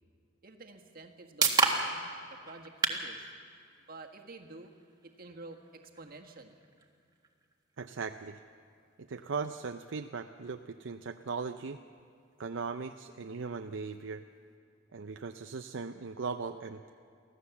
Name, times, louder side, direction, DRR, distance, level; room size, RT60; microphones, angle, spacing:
voice 1, 0.4-3.3 3.9-4.7 5.0-6.6, right 3 dB, 50° right, 4 dB, 1.6 m, -50 dB
sound 1, 0.7-14.6, right 4 dB, 20° right, 1.6 m, -38 dB
voice 2, 7.8-8.4 9.1-11.8 12.4-14.2 14.9-16.8, right 5 dB, 70° right, 6 dB, 0.6 m, -38 dB
24.5 x 15.5 x 7.1 m, 2.3 s
head